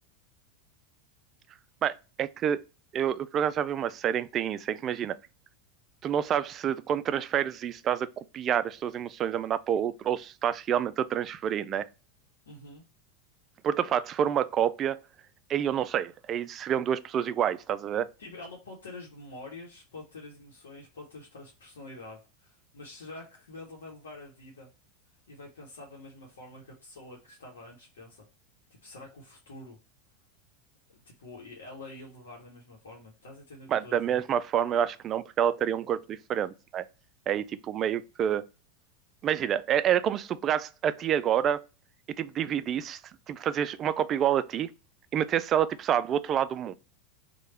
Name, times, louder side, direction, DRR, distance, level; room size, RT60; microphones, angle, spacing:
voice 1, 1.8-2.6 2.9-5.2 6.0-11.9 13.6-15.0 15.5-18.1 33.7-36.8 37.3-38.4 39.2-41.6 42.2-43.0 43.3-44.7 45.1-46.7, right 9 dB, 35° right, 0.3 m, -28 dB
voice 2, 12.5-12.8 18.2-24.7 25.3-28.2 28.8-29.8 30.9-34.2, left 2 dB, 75° left, 0.9 m, -46 dB
3.2 x 2.2 x 4.3 m
hypercardioid pair, 90°, 0 cm